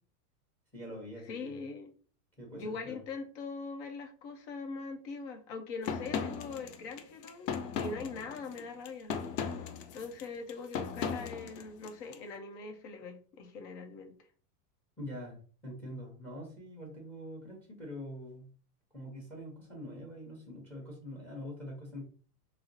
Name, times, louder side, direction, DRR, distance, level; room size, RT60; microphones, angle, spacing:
voice 1, 0.7-1.6 2.4-3.0 15.0-15.4 15.6-18.5 18.9-22.0, equal, 5° left, 1.0 m, -44 dB
voice 2, 1.3-1.9 2.5-7.5 7.8-9.1 9.9-14.1, left 4 dB, 45° left, 0.7 m, -42 dB
sound 1, 5.8-12.2, left 6 dB, 85° left, 0.7 m, -37 dB
3.9 x 2.0 x 2.6 m
supercardioid pair, 160°, 47 cm